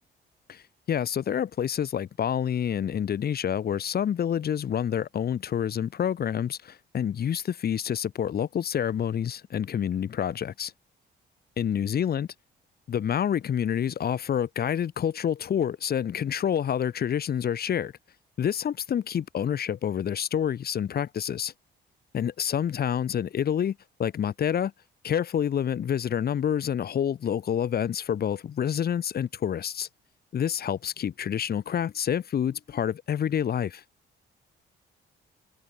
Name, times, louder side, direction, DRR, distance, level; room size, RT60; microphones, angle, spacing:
voice 1, 0.5-10.7 11.6-12.3 12.9-17.9 18.4-21.5 22.1-24.7 25.0-29.9 30.3-33.8, left 9 dB, 50° left, 1.1 m, -28 dB
cardioid pair, 90°, 20 cm